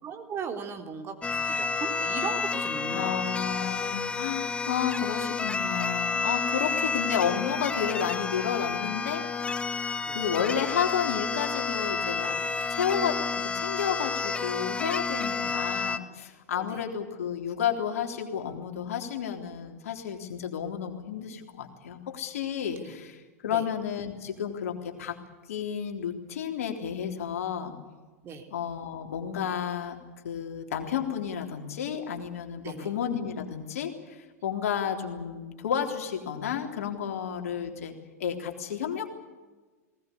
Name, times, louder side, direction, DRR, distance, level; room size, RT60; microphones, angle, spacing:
voice 1, 0.0-3.2 10.1-10.2 15.4-15.5 16.5-16.8 22.8-22.9 23.5-23.6 28.2-28.5 32.6-32.9, right 5 dB, 30° right, 5 dB, 3.4 m, -38 dB
sound 1, 1.2-16.0, left 4 dB, 10° left, 1.1 m, -30 dB
voice 2, 2.9-9.2 10.1-12.4 12.7-25.2 25.5-27.7 28.5-30.0 30.2-37.9 38.2-39.1, left 8 dB, 60° left, 4 dB, 3.6 m, -31 dB
20.0 x 20.0 x 8.5 m, 1.3 s
figure-of-eight pair, 90°, 9 cm